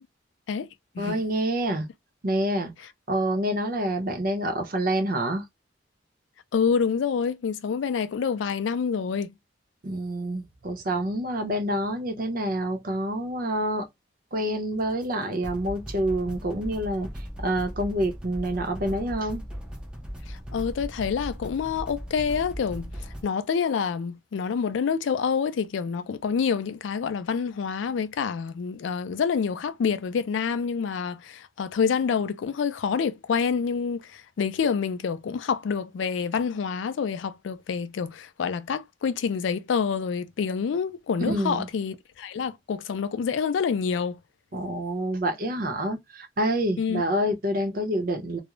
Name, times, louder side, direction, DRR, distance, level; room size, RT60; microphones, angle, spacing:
voice 1, 1.0-1.9 2.2-2.7 3.1-5.4 9.8-13.9 14.3-17.1 17.4-19.4 41.3-41.7 44.5-48.4, right 1 dB, 50° right, 0.7 m, -27 dB
voice 2, 6.5-9.3 20.3-22.9 23.2-44.2 46.8-47.0, left 6 dB, 75° left, 0.3 m, -27 dB
sound 1, 15.0-15.1 15.4-23.2, equal, 5° right, 0.5 m, -38 dB
2.4 x 2.0 x 3.0 m
head